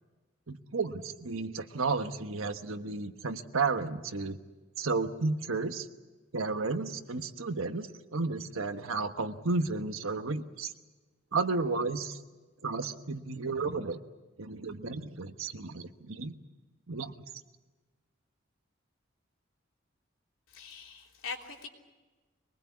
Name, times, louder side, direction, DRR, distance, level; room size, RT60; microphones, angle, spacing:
voice 1, 0.5-4.4 4.8-5.9 6.3-10.7 11.3-12.2 12.6-14.0 14.4-16.3 16.9-17.1, right 3 dB, 85° right, 8 dB, 1.2 m, -32 dB
voice 2, 20.5-21.7, left 4 dB, 85° left, 0 dB, 3.3 m, -42 dB
24.5 x 20.0 x 8.4 m, 1.3 s
head